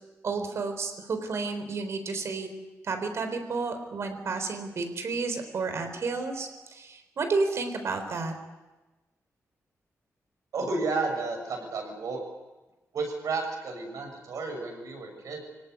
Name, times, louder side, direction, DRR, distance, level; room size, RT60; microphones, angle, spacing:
voice 1, 0.2-2.5 2.8-8.3, right 4 dB, 55° right, 7 dB, 4.1 m, -31 dB
voice 2, 10.5-12.2 12.9-15.5, right 3 dB, 85° right, 3 dB, 6.9 m, -32 dB
25.5 x 17.5 x 9.6 m, 1.1 s
wide cardioid pair, 165°, 6 cm